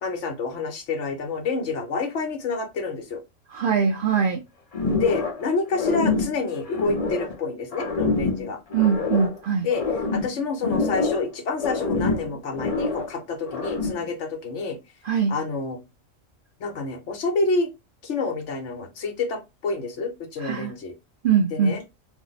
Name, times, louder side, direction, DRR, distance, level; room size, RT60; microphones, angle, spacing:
voice 1, 0.0-3.2 5.0-8.6 9.6-9.8 10.1-14.8 15.3-15.8 16.6-17.7 18.0-20.9 21.5-21.8, left 4 dB, 65° left, 1.0 m, -28 dB
voice 2, 3.5-4.4 8.7-9.7 15.1-15.3 20.4-20.7 21.2-21.8, right 6 dB, 70° right, 0.5 m, -22 dB
sound 1, 4.7-5.5 5.7-7.4 7.7-9.4 9.7-11.3 11.6-13.1 13.5-14.1, left 3 dB, 40° left, 0.6 m, -26 dB
2.6 x 2.0 x 3.9 m
omnidirectional pair, 1.4 m